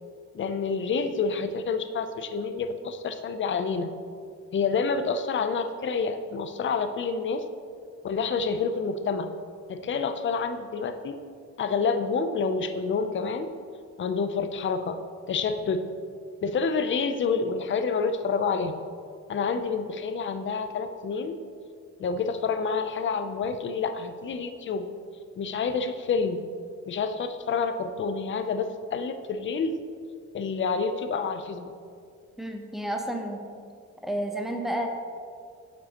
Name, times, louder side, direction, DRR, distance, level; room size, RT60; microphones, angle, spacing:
voice 1, 0.3-3.9 4.5-7.4 8.0-9.3 9.7-11.2 11.6-13.5 14.0-15.0 15.3-15.8 16.4-18.8 19.3-21.4 22.0-24.9 25.4-26.4 26.9-29.8 30.3-31.7, left 5 dB, 40° left, 9 dB, 0.5 m, -28 dB
voice 2, 32.4-33.5 34.0-34.9, right 1 dB, ahead, 2 dB, 0.7 m, -31 dB
9.2 x 7.3 x 2.9 m, 2.2 s
wide cardioid pair, 145°, 30 cm